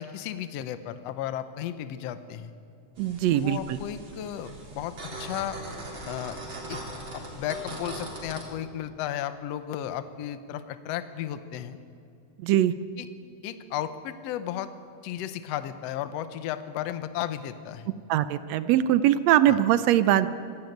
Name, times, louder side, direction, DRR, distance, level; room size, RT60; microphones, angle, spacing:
voice 1, 0.0-2.5 3.3-5.6 6.1-6.4 6.7-6.8 7.1-11.8 13.0-13.1 13.4-14.7 15.0-17.9 19.5-19.6, left 11 dB, 70° left, 11 dB, 1.9 m, -34 dB
sound 1, 3.0-8.4, right 1 dB, 40° right, 4.1 m, -40 dB
voice 2, 3.0-3.8 12.4-12.7 18.1-20.3, right 12 dB, 75° right, 14 dB, 1.7 m, -22 dB
26.0 x 11.5 x 9.3 m, 2.6 s
omnidirectional pair, 3.3 m